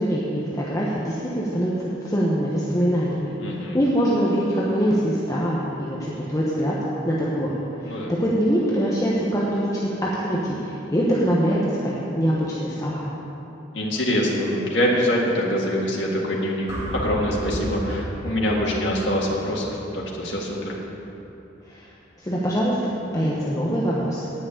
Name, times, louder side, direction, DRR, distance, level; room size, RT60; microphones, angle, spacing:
voice 1, 0.0-3.3 3.7-6.7 7.0-7.5 7.8-13.0 21.7-21.9 22.2-24.2, equal, 20° left, -6 dB, 1.0 m, -23 dB
voice 2, 3.4-3.8 7.8-8.1 13.7-16.7 16.9-20.7, equal, 75° left, -3 dB, 1.8 m, -24 dB
sound 1, 16.7-20.9, equal, 15° right, 1.8 m, -34 dB
10.0 x 6.3 x 8.5 m, 3.0 s
head